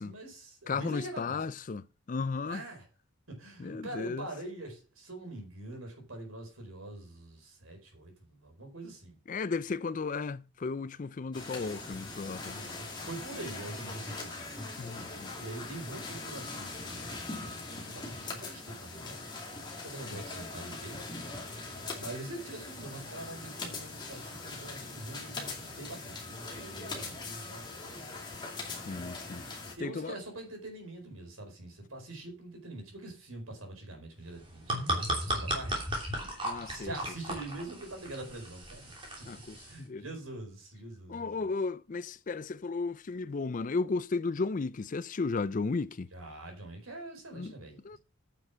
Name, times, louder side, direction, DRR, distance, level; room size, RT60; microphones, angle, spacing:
voice 1, 0.0-1.4 2.5-2.9 3.3-9.2 12.5-14.5 15.4-19.5 19.8-21.0 22.0-28.1 29.8-35.9 36.6-38.9 39.7-41.4 46.1-47.8, right 2 dB, 75° right, 4.5 m, -44 dB
voice 2, 0.7-2.6 3.6-4.3 9.3-12.6 14.8-15.4 20.1-20.2 28.7-29.4 29.8-30.2 36.4-37.0 39.3-40.0 41.1-46.1 47.3-47.5 47.8-48.0, left 4 dB, 35° left, 0.4 m, -34 dB
sound 1, 11.3-29.7, left 3 dB, 20° left, 2.4 m, -41 dB
sound 2, 34.3-39.8, right 1 dB, 25° right, 3.0 m, -35 dB
9.2 x 6.6 x 5.8 m
head